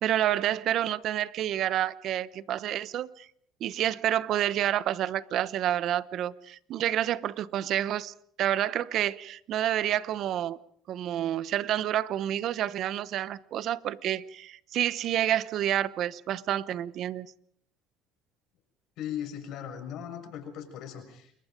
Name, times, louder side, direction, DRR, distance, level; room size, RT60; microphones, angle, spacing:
voice 1, 0.0-3.3 3.6-10.6 10.9-17.3, right 11 dB, 55° right, 0.9 m, -29 dB
voice 2, 19.0-21.4, left 9 dB, 65° left, 6.8 m, -38 dB
29.0 x 22.5 x 5.3 m
supercardioid pair, 110°, 0 cm